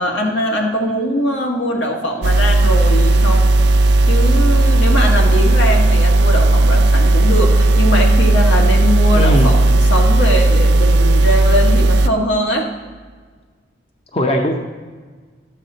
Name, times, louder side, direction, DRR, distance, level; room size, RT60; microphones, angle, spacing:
voice 1, 0.0-3.5 4.1-12.7, equal, 90° left, 0 dB, 1.5 m, -21 dB
sound 1, 2.2-12.1, right 2 dB, 70° right, 0.4 m, -13 dB
voice 2, 9.1-9.6 14.1-14.6, equal, 30° left, 4 dB, 0.6 m, -18 dB
12.0 x 7.5 x 3.9 m, 1.5 s
head